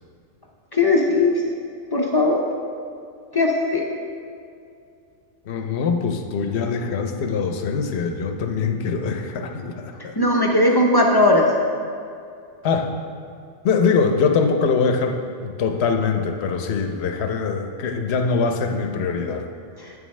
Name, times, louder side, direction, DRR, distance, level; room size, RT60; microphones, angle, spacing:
voice 1, 0.7-1.4 1.9-2.5 3.3-3.9 10.2-11.5 19.8-19.9, left 2 dB, 30° left, 0 dB, 0.4 m, -18 dB
voice 2, 5.5-10.1 12.6-12.9 13.6-19.4, left 5 dB, 65° left, 5 dB, 0.9 m, -23 dB
8.7 x 7.2 x 3.2 m, 2.4 s
omnidirectional pair, 1.3 m